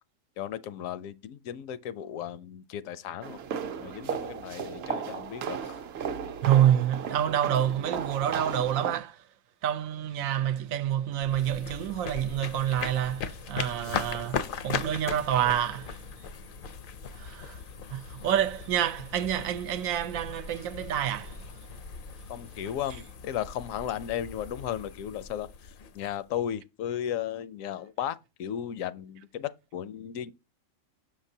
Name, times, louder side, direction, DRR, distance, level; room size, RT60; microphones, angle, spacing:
voice 1, 0.4-3.4 3.8-5.7 22.3-30.3, left 10 dB, 80° left, 1.0 m, -35 dB
sound 1, 3.2-9.0, right 7 dB, 60° right, 0.7 m, -35 dB
voice 2, 6.4-9.2 9.6-16.0 17.2-17.6 17.9-21.4, right 10 dB, 90° right, 1.0 m, -27 dB
sound 2, 11.2-26.4, left 6 dB, 60° left, 0.6 m, -39 dB
6.5 x 5.9 x 2.7 m
omnidirectional pair, 1.4 m